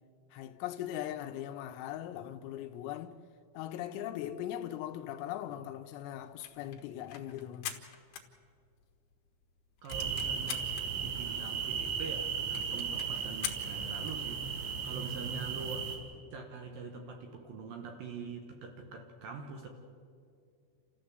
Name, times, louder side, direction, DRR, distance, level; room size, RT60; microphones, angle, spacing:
voice 1, 0.3-3.1 3.6-7.8, left 12 dB, 85° left, 3.5 m, -40 dB
sound 1, 6.2-8.9 9.3-9.4 9.6-10.9 11.5-11.6 11.7-11.8 12.1-12.2 12.5-14.2, left 10 dB, 65° left, 2.9 m, -43 dB
voice 2, 9.8-10.7 11.0-15.9 16.3-19.7, right 4 dB, 65° right, 2.2 m, -44 dB
sound 2, 9.9-16.0, right 6 dB, 85° right, 4.9 m, -36 dB
29.5 x 14.5 x 7.9 m
omnidirectional pair, 5.8 m